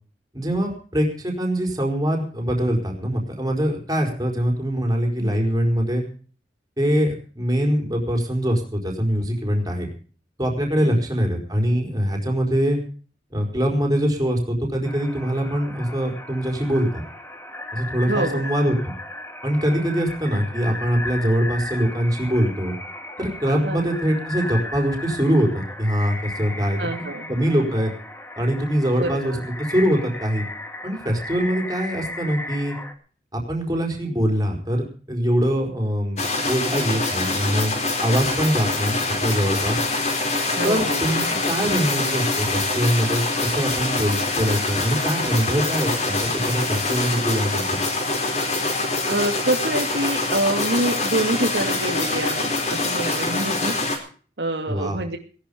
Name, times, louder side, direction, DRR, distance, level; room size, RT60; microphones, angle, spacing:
voice 1, 0.3-6.0 6.8-9.9 10.4-12.8 13.3-17.0 17.7-18.9 19.4-22.7 23.2-26.8 27.3-27.9 28.4-30.4 30.8-32.7 33.3-37.7 38.0-39.8 40.6-47.8 54.7-55.0, equal, 20° right, 2 dB, 4.6 m, -23 dB
sound 1, 14.8-32.9, left 2 dB, 15° left, 1.9 m, -36 dB
voice 2, 18.1-18.5 23.6-24.0 26.8-27.3 28.9-29.4 40.6-41.0 49.1-53.7 54.4-55.2, right 1 dB, 85° right, 4 dB, 2.5 m, -26 dB
sound 2, 36.2-54.0, left 3 dB, 40° left, 4.2 m, -24 dB
18.5 x 11.5 x 5.1 m, 0.41 s
head